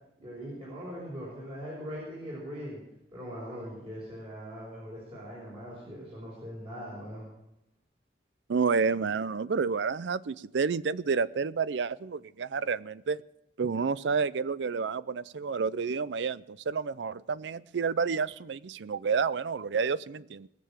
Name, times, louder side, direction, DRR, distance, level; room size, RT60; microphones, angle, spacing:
voice 1, 0.2-2.8 3.1-7.3, equal, 30° right, -6 dB, 5.1 m, -41 dB
voice 2, 8.5-13.2 13.6-20.5, right 5 dB, 85° right, 18 dB, 0.5 m, -30 dB
19.5 x 6.9 x 7.4 m, 0.85 s
head